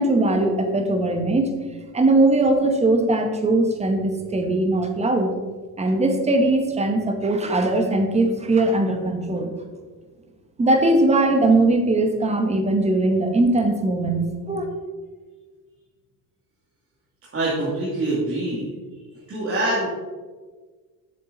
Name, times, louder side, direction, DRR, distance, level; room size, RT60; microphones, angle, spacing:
voice 1, 0.0-1.6 1.9-5.3 5.8-9.5 10.6-14.7, right 2 dB, 15° right, 5 dB, 1.0 m, -20 dB
voice 2, 17.3-18.7 19.3-19.9, right 2 dB, 35° right, -7 dB, 2.2 m, -24 dB
7.5 x 6.5 x 3.9 m, 1.4 s
cardioid pair, 135°, 38 cm